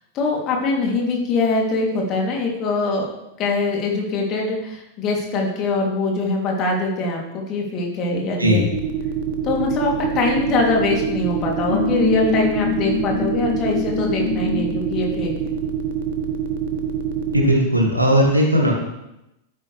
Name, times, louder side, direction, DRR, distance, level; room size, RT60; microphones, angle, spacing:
voice 1, 0.1-3.0 3.4-8.6 9.4-15.3, left 3 dB, 35° left, -1 dB, 3.0 m, -22 dB
sound 1, 8.7-17.4, right 8 dB, 50° right, 1.7 m, -25 dB
sound 2, 11.7-14.9, left 7 dB, 80° left, 3.0 m, -25 dB
voice 2, 17.3-18.7, equal, 85° right, 0 dB, 2.3 m, -17 dB
12.0 x 10.0 x 3.4 m, 0.88 s
figure-of-eight pair, 90°, 0 cm